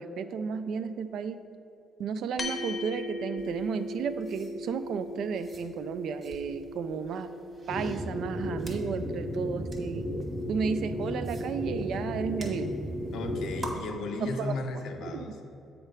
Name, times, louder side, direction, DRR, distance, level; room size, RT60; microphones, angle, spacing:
voice 1, 0.0-1.4 2.0-7.3 7.7-10.1 10.5-12.7 14.2-14.6 15.0-15.2, right 6 dB, 75° right, 10 dB, 0.4 m, -33 dB
sound 1, 2.4-11.1, left 1 dB, 40° left, 0.7 m, -40 dB
sound 2, 3.4-13.7, right 3 dB, 40° right, 1.5 m, -50 dB
sound 3, 7.7-13.7, left 1 dB, 10° right, 0.6 m, -34 dB
voice 2, 13.1-15.4, left 3 dB, 80° left, 4 dB, 0.8 m, -35 dB
7.9 x 4.2 x 5.3 m, 2.8 s
cardioid pair, 90°, 0 cm